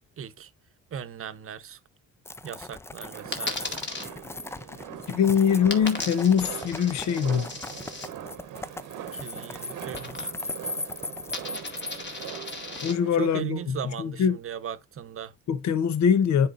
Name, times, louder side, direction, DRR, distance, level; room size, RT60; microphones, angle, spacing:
voice 1, 0.2-0.5 0.9-1.8 2.4-3.9 9.1-10.3 13.2-15.3, right 8 dB, 45° right, 0.8 m, -37 dB
sound 1, 2.3-12.8, left 2 dB, 10° left, 0.4 m, -38 dB
sound 2, 3.1-13.1, right 10 dB, 90° right, 1.0 m, -42 dB
Coin (dropping), 3.3-4.0 5.7-8.1 9.9-10.6 10.9-12.9, left 3 dB, 35° left, 2.0 m, -36 dB
voice 2, 5.1-7.5 12.8-14.4 15.5-16.5, left 7 dB, 65° left, 0.8 m, -23 dB
9.8 x 4.4 x 2.5 m
cardioid pair, 90°, 30 cm